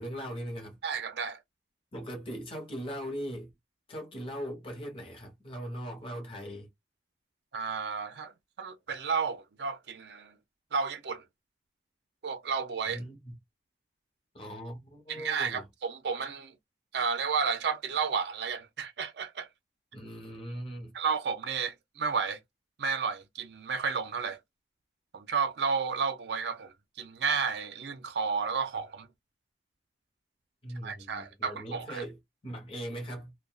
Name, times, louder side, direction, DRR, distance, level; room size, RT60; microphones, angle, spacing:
voice 1, 0.0-0.8 1.9-3.5 3.9-6.7 12.9-13.3 14.3-15.7 19.9-21.0 30.6-33.3, equal, 30° left, 1.0 m, -40 dB
voice 2, 0.8-1.4 7.5-8.3 8.6-10.3 10.7-11.2 12.2-13.0 15.1-16.5 16.9-19.5 20.9-22.4 22.8-24.4 25.1-29.1 30.8-32.0, right 5 dB, 75° right, 0.5 m, -32 dB
2.4 x 2.2 x 2.4 m
head